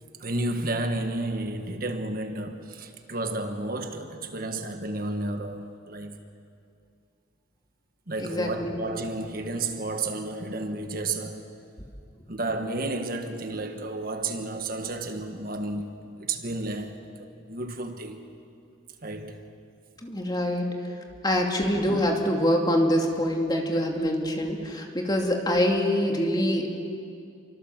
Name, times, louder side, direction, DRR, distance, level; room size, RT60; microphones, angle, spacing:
voice 1, 0.2-6.2 8.1-11.5 12.3-18.2 19.0-19.4, right 2 dB, 50° right, 1.5 m, -32 dB
voice 2, 8.2-8.8 20.0-20.7 21.2-26.8, equal, 20° left, 2.6 m, -25 dB
27.0 x 24.5 x 7.4 m
head